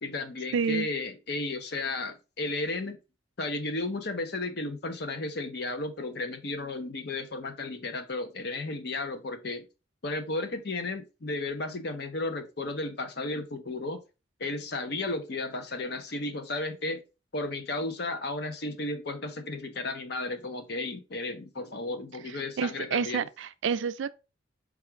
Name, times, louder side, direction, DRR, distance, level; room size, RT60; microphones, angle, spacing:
voice 1, 0.0-3.0 3.4-9.7 10.0-14.0 14.4-17.0 17.3-23.2, left 2 dB, 60° left, 0.7 m, -34 dB
voice 2, 0.5-0.9 22.3-24.1, right 6 dB, 80° right, 0.4 m, -29 dB
4.8 x 2.4 x 4.3 m
head